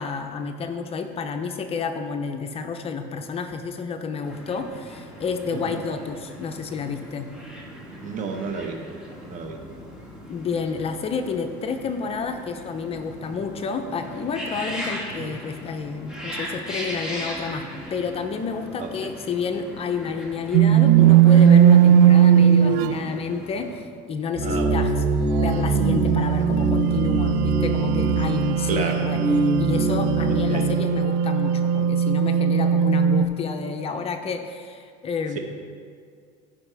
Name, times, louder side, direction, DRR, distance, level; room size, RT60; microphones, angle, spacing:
voice 1, 0.0-7.3 10.3-25.0 25.4-35.4, left 5 dB, 35° left, 6 dB, 0.6 m, -30 dB
sound 1, 4.2-23.8, equal, 5° right, 1.9 m, -38 dB
voice 2, 8.0-8.8 9.2-9.6 15.2-15.3 18.8-19.1 24.4-24.8 28.7-29.0 30.5-30.7, right 4 dB, 45° right, 4 dB, 1.1 m, -31 dB
sound 2, 20.5-23.0 25.3-33.3, right 9 dB, 85° right, 0.4 m, -18 dB
sound 3, 24.3-30.7, right 2 dB, 20° right, 1.7 m, -24 dB
14.5 x 5.3 x 3.4 m, 2.1 s
cardioid pair, 120°, 18 cm